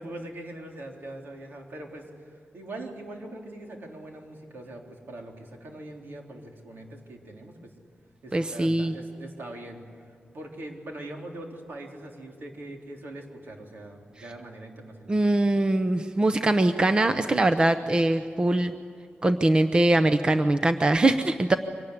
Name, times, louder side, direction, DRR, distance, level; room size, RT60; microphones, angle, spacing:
voice 1, 0.0-7.7 8.2-15.2, right 1 dB, 70° right, 1 dB, 3.9 m, -42 dB
voice 2, 8.3-8.9 15.1-18.7 19.2-21.6, right 2 dB, 25° right, 9 dB, 0.7 m, -22 dB
24.5 x 19.0 x 9.9 m, 2.3 s
wide cardioid pair, 155°, 4 cm